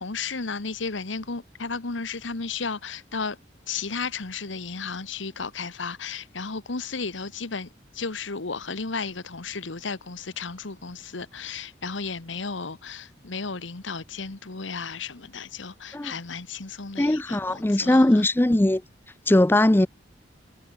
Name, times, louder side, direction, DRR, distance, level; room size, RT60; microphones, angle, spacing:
voice 1, 0.0-3.4 3.7-7.7 7.9-18.3, left 4 dB, 85° left, 1.4 m, -34 dB
voice 2, 17.0-18.8 19.3-19.9, left 1 dB, 10° left, 0.4 m, -20 dB
head